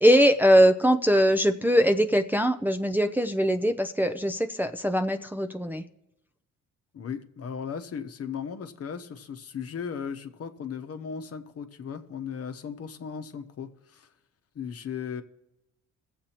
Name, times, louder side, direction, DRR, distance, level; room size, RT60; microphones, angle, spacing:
voice 1, 0.0-5.8, equal, 5° right, 5 dB, 0.5 m, -21 dB
voice 2, 6.9-14.1 14.5-15.2, left 7 dB, 50° left, 7 dB, 1.0 m, -36 dB
21.5 x 7.6 x 2.9 m, 0.91 s
cardioid pair, 90°, 30 cm